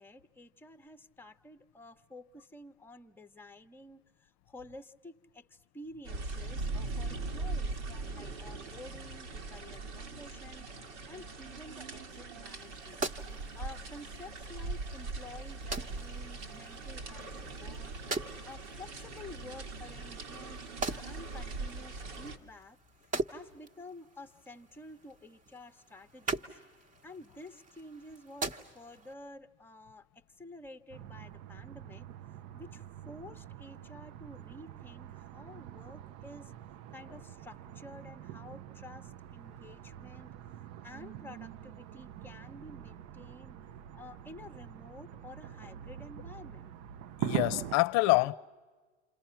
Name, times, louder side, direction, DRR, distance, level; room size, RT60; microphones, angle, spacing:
voice 1, 0.0-13.0 13.3-18.0 18.2-22.8 23.3-26.6 27.0-32.1 32.5-36.5 36.9-40.4 40.8-43.6 43.9-46.7, left 2 dB, 5° left, 0.9 m, -51 dB
sound 1, 6.0-22.4, right 3 dB, 75° right, 2.2 m, -41 dB
sound 2, 12.5-29.1, right 3 dB, 25° right, 1.1 m, -43 dB
sound 3, 30.9-47.8, right 12 dB, 50° right, 0.7 m, -44 dB
voice 2, 47.2-48.4, left 20 dB, 50° left, 0.7 m, -26 dB
29.0 x 27.5 x 5.8 m
hypercardioid pair, 90°, 34 cm